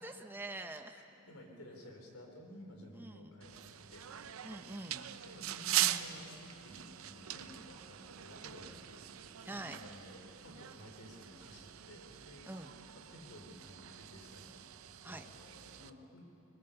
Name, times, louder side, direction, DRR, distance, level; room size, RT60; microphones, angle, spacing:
voice 1, 0.0-1.0 2.9-3.3 4.4-5.1 9.4-9.8 12.5-12.7 15.0-15.2, right 2 dB, 10° right, 6 dB, 0.8 m, -45 dB
voice 2, 0.9-4.1 5.2-12.6 12.9-14.6 15.1-16.2, left 1 dB, 85° left, 2 dB, 3.4 m, -54 dB
sound 1, 3.4-15.9, right 12 dB, 70° right, 0.6 m, -41 dB
21.0 x 20.0 x 6.9 m, 2.8 s
head